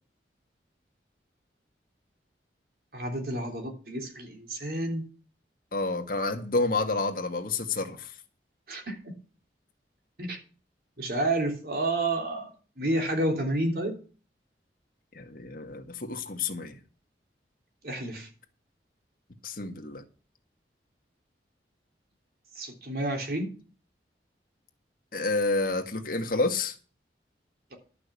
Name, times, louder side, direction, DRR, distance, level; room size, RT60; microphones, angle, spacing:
voice 1, 2.9-5.1 8.7-9.0 10.2-10.4 11.0-12.5 12.8-14.0 17.8-18.3 22.6-23.5, right 1 dB, 55° right, 3.3 m, -30 dB
voice 2, 5.7-8.1 15.1-16.8 19.4-20.0 25.1-26.7, left 3 dB, 50° left, 1.7 m, -29 dB
11.5 x 6.0 x 8.3 m
head